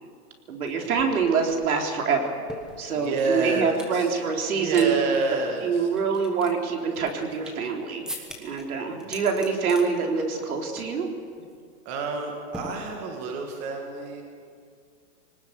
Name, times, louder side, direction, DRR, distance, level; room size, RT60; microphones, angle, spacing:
voice 1, 0.5-2.3 2.8-4.9 5.3-11.1, right 5 dB, 65° right, 2 dB, 3.9 m, -25 dB
sound 1, 0.7-0.8 1.0-4.0 4.4-4.9 5.1-5.2 5.8-7.7 8.1-8.6 9.0-9.9 10.2-10.5 10.8-11.0 11.3-11.6 12.5-13.3, equal, ahead, 1.3 m, -41 dB
voice 2, 2.9-4.1 4.5-5.9 8.9-9.1 11.9-14.2, right 3 dB, 25° right, 2 dB, 2.2 m, -29 dB
22.0 x 19.0 x 8.3 m, 2.2 s
hypercardioid pair, 160°, 46 cm